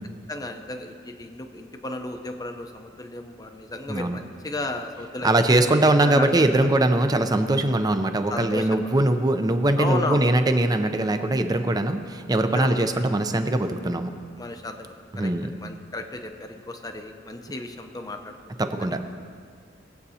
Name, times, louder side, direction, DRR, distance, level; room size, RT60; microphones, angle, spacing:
voice 1, 0.3-5.5 6.0-6.3 6.6-6.7 8.3-9.0 9.8-10.3 12.5-12.9 14.4-19.0, left 2 dB, 20° left, 5 dB, 0.7 m, -34 dB
voice 2, 3.9-4.2 5.2-14.1 15.1-15.5 18.6-19.0, right 1 dB, 20° right, 8 dB, 0.6 m, -21 dB
20.0 x 8.0 x 2.8 m, 2.1 s
head